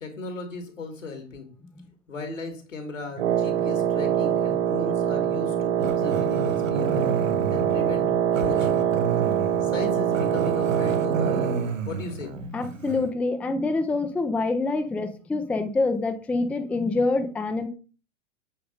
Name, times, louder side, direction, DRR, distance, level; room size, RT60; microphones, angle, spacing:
voice 1, 0.0-1.5 2.1-7.1 7.5-8.1 8.4-8.8 9.6-11.5 11.8-12.3, left 3 dB, 80° left, 5 dB, 2.6 m, -36 dB
Wind instrument woodwind instrument, 3.2-11.7, right 9 dB, 55° right, 1.0 m, -24 dB
Growling, 5.8-13.1, right 4 dB, 80° right, 1.0 m, -32 dB
voice 2, 12.5-17.7, left 3 dB, 5° left, 6 dB, 0.4 m, -26 dB
8.2 x 3.9 x 5.1 m, 0.36 s
figure-of-eight pair, 105°, 38 cm